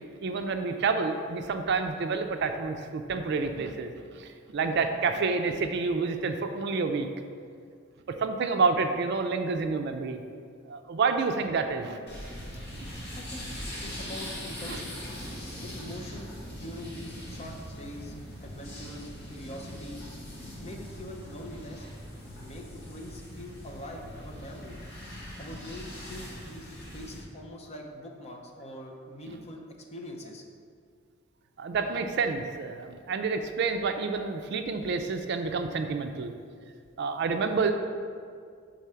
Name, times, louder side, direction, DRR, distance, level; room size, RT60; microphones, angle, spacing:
voice 1, 0.2-7.1 8.1-10.2 10.7-12.0 14.7-14.8 31.6-36.3 37.0-37.7, right 4 dB, 55° right, 6 dB, 0.4 m, -29 dB
sound 1, 12.1-27.2, equal, 55° left, 1.4 m, -41 dB
voice 2, 13.1-13.5 13.8-15.1 15.5-18.1 18.4-20.0 20.6-21.9 22.4-24.8 25.4-29.6 29.9-30.4, left 1 dB, 30° left, 0 dB, 0.6 m, -43 dB
4.8 x 3.9 x 5.6 m, 2.1 s
head